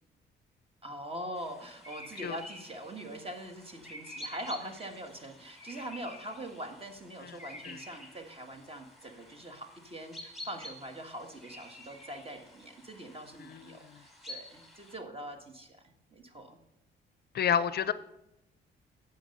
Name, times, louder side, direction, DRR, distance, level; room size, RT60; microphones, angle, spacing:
voice 1, 0.8-16.6, right 1 dB, 30° right, 5 dB, 1.5 m, -43 dB
sound 1, 1.4-15.0, left 1 dB, ahead, 2.9 m, -49 dB
voice 2, 13.5-13.8 17.3-17.9, left 8 dB, 55° left, 15 dB, 0.5 m, -29 dB
9.9 x 6.9 x 5.3 m, 0.86 s
cardioid pair, 90°, 20 cm